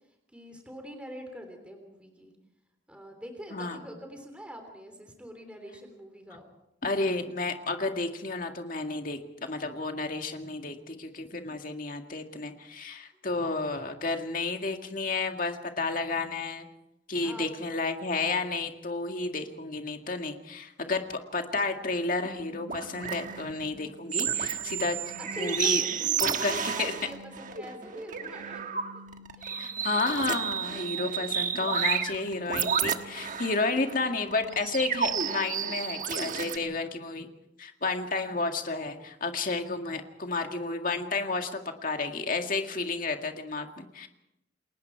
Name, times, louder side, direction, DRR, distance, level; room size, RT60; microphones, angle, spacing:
voice 1, 0.3-2.3 2.9-6.5 13.4-13.5 17.2-17.5 25.2-28.8 29.4-29.6 30.9-31.3, equal, 5° right, 3 dB, 3.4 m, -44 dB
voice 2, 6.8-16.7 17.1-25.0 25.4-25.8 26.2-26.9 29.6-37.3 37.6-44.1, left 3 dB, 45° left, 4 dB, 2.1 m, -31 dB
sound 1, 22.2-36.6, right 7 dB, 45° right, 1.3 m, -32 dB
29.5 x 21.0 x 4.7 m, 0.86 s
head